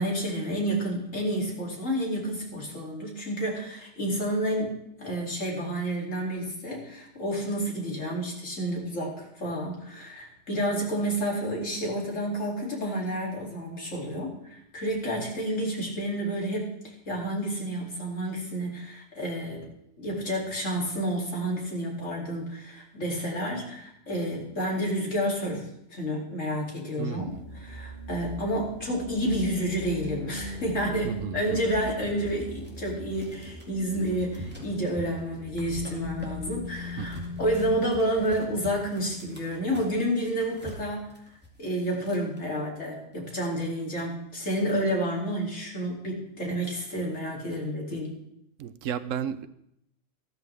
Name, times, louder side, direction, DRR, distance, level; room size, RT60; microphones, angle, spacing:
voice 1, 0.0-19.7 20.0-41.1 41.6-48.1, right 1 dB, 75° left, -2 dB, 3.3 m, -30 dB
voice 2, 27.0-27.4 31.0-31.8 37.0-37.2 48.6-49.5, right 8 dB, 85° right, 14 dB, 1.0 m, -34 dB
sound 1, 27.3-37.8, left 2 dB, 45° right, 2.4 m, -39 dB
sound 2, 32.2-42.5 42.9-43.0 43.2-43.9 44.3-44.6, right 1 dB, 10° right, 2.3 m, -46 dB
14.0 x 13.0 x 3.4 m, 0.76 s
omnidirectional pair, 1.3 m